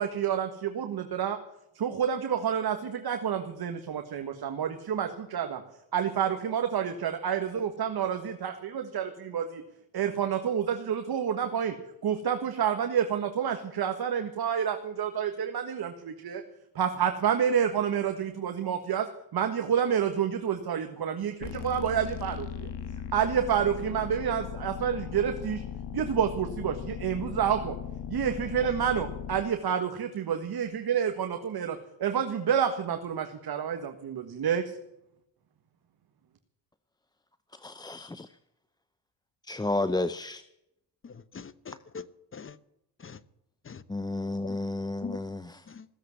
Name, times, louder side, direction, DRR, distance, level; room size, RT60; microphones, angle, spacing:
voice 1, 0.0-1.4 1.8-5.6 5.9-9.6 9.9-11.8 12.0-16.4 16.8-22.7 23.1-25.6 25.9-27.8 28.1-34.8, right 8 dB, 50° right, 6 dB, 1.7 m, -29 dB
sound 1, 21.4-29.4, left 8 dB, 60° left, 1.6 m, -38 dB
voice 2, 37.6-38.3 39.5-40.4 43.9-45.6, left 2 dB, 10° left, 13 dB, 0.6 m, -31 dB
voice 3, 41.0-42.0 42.3-42.6 43.0-43.2 43.7-43.8 44.4-44.6 45.0-45.2 45.7-45.8, left 5 dB, 25° left, 17 dB, 0.9 m, -42 dB
16.5 x 7.8 x 9.7 m, 0.82 s
cardioid pair, 90°, 47 cm